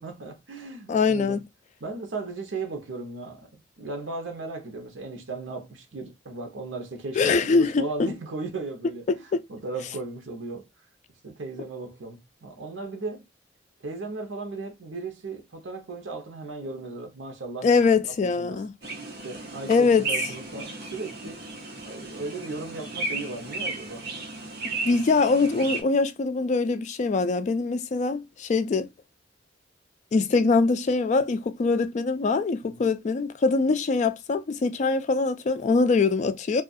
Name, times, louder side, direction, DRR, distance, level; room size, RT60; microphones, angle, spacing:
voice 1, 0.0-1.4 1.8-9.1 9.5-10.7 11.2-13.2 13.8-17.8 18.2-18.6 19.2-21.4 21.8-24.1 32.6-32.9, right 3 dB, 85° right, 0.8 m, -36 dB
voice 2, 0.9-1.4 7.2-8.1 9.1-9.4 17.6-18.7 19.7-20.1 24.8-28.9 30.1-36.6, left 4 dB, 40° left, 0.3 m, -23 dB
sound 1, 18.8-25.8, right 3 dB, 55° right, 0.9 m, -34 dB
2.4 x 2.3 x 2.5 m
head